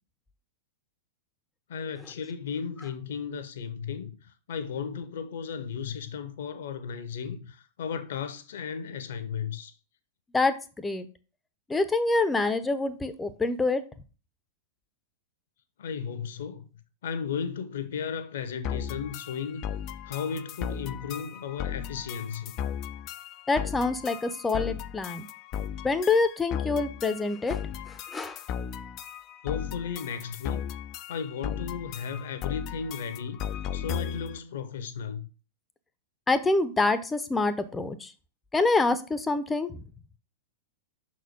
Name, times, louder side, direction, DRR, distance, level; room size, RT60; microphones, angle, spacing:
voice 1, 1.7-9.7 15.8-16.7 17.0-19.6 20.0-22.5 29.4-30.7 31.1-35.3, left 6 dB, 60° left, 0.9 m, -35 dB
voice 2, 10.3-11.1 11.7-13.8 23.5-25.3 25.8-27.6 27.9-28.4 36.3-38.1 38.5-39.8, left 3 dB, 10° left, 0.7 m, -26 dB
sound 1, 18.6-34.4, left 9 dB, 40° left, 0.4 m, -36 dB
6.2 x 4.3 x 5.0 m
figure-of-eight pair, 95°, 0 cm